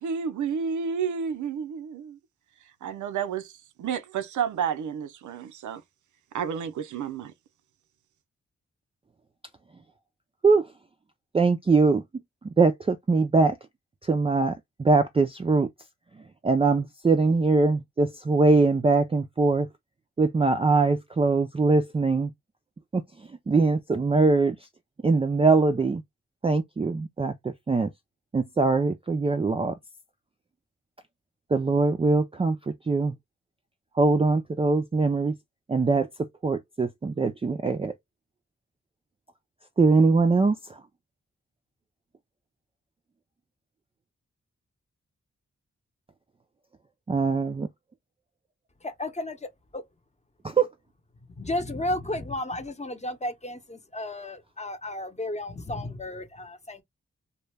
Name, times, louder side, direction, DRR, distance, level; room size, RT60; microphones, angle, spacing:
voice 1, 0.0-2.2 2.8-3.5 3.8-5.8 6.3-7.3, right 7 dB, 90° right, 0.4 m, -30 dB
voice 2, 11.3-12.0 12.4-13.6 14.0-15.7 16.4-19.7 20.2-22.3 22.9-23.0 23.5-24.6 25.0-26.0 26.4-27.9 28.3-29.7 31.5-33.1 34.0-35.3 35.7-36.1 36.4-37.9 39.8-40.8 47.1-47.7, right 3 dB, 20° right, 0.3 m, -22 dB
voice 3, 49.0-49.4 49.7-49.8 51.4-56.8, left 1 dB, 25° left, 0.7 m, -33 dB
2.2 x 2.0 x 3.2 m
cardioid pair, 50°, 29 cm